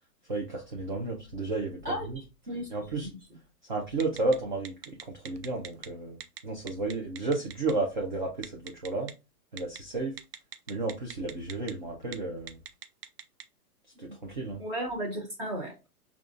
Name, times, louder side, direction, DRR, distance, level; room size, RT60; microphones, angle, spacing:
voice 1, 0.3-2.2 2.7-3.1 3.7-4.7 5.0-6.2 6.4-9.1 9.5-10.2 10.7-12.6 14.0-14.6, right 3 dB, 35° right, -1 dB, 0.4 m, -32 dB
Telephone, 4.0-4.4 4.6-5.9 6.2-6.4 6.7-7.7 8.4-9.1 9.6-9.8 10.2-11.7 12.0-12.2 12.5-13.4, right 9 dB, 90° right, 0.7 m, -40 dB
voice 2, 14.6-15.9, equal, 15° right, -3 dB, 0.8 m, -34 dB
4.8 x 2.4 x 2.5 m, 0.27 s
hypercardioid pair, 170°, 47 cm